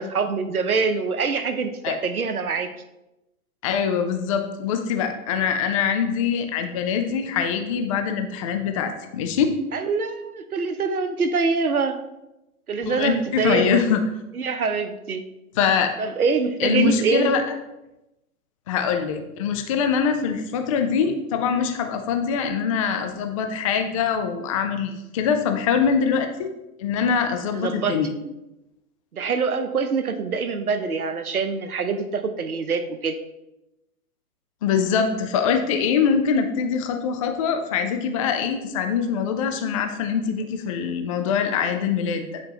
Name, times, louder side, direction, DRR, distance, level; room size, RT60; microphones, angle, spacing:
voice 1, 0.0-2.7 9.7-12.0 12.7-13.8 14.3-15.2 16.0-17.3 27.5-28.0 29.1-33.2, right 4 dB, 85° right, 9 dB, 0.8 m, -25 dB
voice 2, 3.6-9.5 12.9-14.0 15.6-15.9 16.6-17.4 18.7-26.5 26.8-28.1 34.6-42.4, left 6 dB, 25° left, 6 dB, 0.4 m, -23 dB
8.5 x 4.4 x 2.9 m, 0.93 s
figure-of-eight pair, 110°, 43 cm